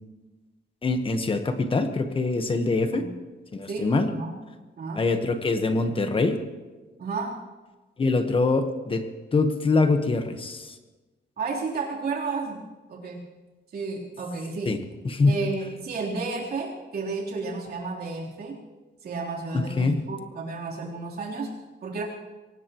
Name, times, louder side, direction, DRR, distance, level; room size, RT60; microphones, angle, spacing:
voice 1, 0.8-3.0 3.5-4.1 5.0-6.4 8.0-10.7 14.7-14.8 15.0-15.4 19.5-20.0, left 3 dB, 30° left, 7 dB, 1.2 m, -24 dB
voice 2, 3.7-4.3 4.8-5.1 7.0-7.4 11.4-12.6 12.9-13.3 13.7-14.8 15.3-18.6 19.0-21.5 21.8-22.0, right 4 dB, 60° right, -3 dB, 3.6 m, -32 dB
23.5 x 18.5 x 3.1 m, 1.2 s
wide cardioid pair, 155°, 19 cm